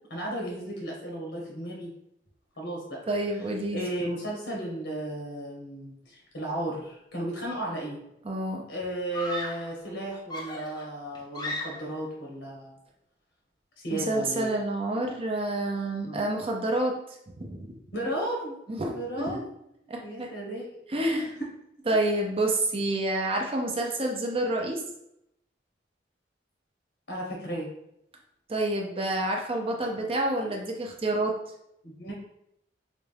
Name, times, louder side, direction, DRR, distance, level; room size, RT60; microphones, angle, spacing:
voice 1, 0.1-1.9 2.6-3.0 3.7-8.0 8.7-12.8 13.8-14.5 16.1-16.3 17.9-18.6 18.8-19.4 20.0-20.8 21.1-21.3 27.1-27.7 31.8-32.1, right 1 dB, 75° left, -1 dB, 1.1 m, -34 dB
voice 2, 3.1-3.8 8.2-8.6 13.9-16.9 17.4-17.7 18.7-19.4 19.9-20.3 20.9-21.2 21.9-24.8 28.5-31.4, right 1 dB, 30° right, 0 dB, 0.6 m, -28 dB
Screaming, 8.0-8.1 9.1-9.7 10.3-12.0, left 1 dB, 25° left, 0.6 m, -36 dB
4.1 x 2.3 x 3.3 m, 0.78 s
head